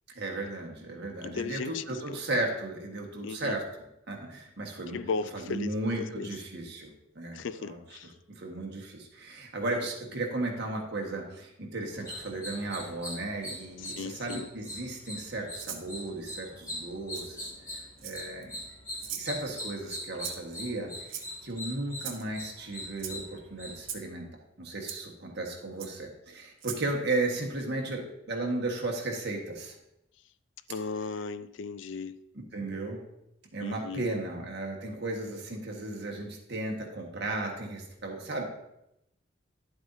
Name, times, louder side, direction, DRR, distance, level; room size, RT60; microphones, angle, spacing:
voice 1, 0.1-3.6 4.1-5.0 5.3-18.6 19.1-24.3 24.6-29.7 32.3-33.0 33.5-38.4, right 2 dB, 55° right, 0 dB, 1.5 m, -35 dB
voice 2, 1.2-2.2 3.2-3.6 4.9-6.3 7.3-8.1 13.9-14.5 30.7-32.2 33.6-34.1, left 4 dB, 65° left, 14 dB, 0.4 m, -36 dB
sound 1, 11.9-24.0, left 1 dB, 15° left, 2.4 m, -42 dB
Rattle (instrument), 15.6-15.9 17.1-17.3 18.0-18.4 19.0-19.3 20.2-20.5 21.1-21.5 22.0-22.2 23.0-23.2 23.8-24.1 24.9-25.0 25.8-25.9 26.6-26.8, right 9 dB, 80° right, 0.9 m, -39 dB
11.0 x 7.9 x 2.7 m, 0.84 s
head